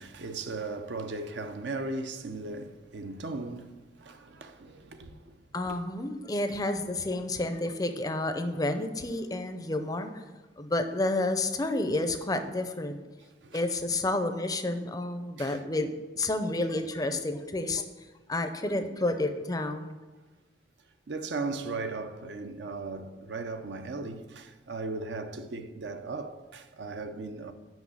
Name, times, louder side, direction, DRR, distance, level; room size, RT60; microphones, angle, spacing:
voice 1, 0.0-5.4 5.7-5.8 13.4-13.6 15.4-15.6 21.1-27.5, right 3 dB, 65° right, 0.6 m, -37 dB
voice 2, 5.5-10.2 10.6-13.0 13.5-17.8 18.3-20.0, left 2 dB, 20° left, 0.5 m, -30 dB
6.1 x 5.5 x 7.1 m
head